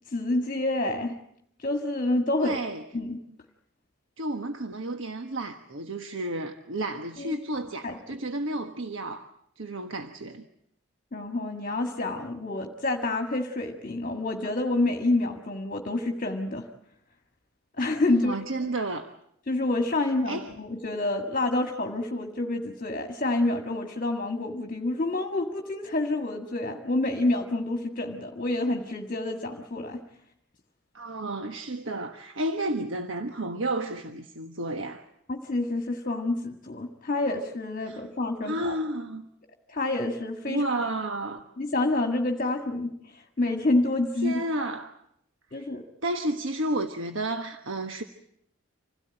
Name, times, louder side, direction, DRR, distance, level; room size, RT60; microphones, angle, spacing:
voice 1, 0.1-1.1 1.6-2.6 2.9-3.2 7.2-7.3 7.8-8.0 11.1-16.7 17.8-18.3 18.6-18.7 19.5-30.0 35.3-38.8 39.7-40.8 41.6-44.4 45.5-45.8, left 2 dB, 40° left, 1.8 m, -28 dB
voice 2, 2.4-2.8 4.2-9.3 9.6-10.5 18.1-19.1 20.3-20.5 30.9-35.0 37.8-38.0 38.4-39.2 40.4-41.4 44.2-44.9 45.5-45.6 46.0-48.0, right 1 dB, 65° right, 1.3 m, -31 dB
27.0 x 17.0 x 9.0 m
head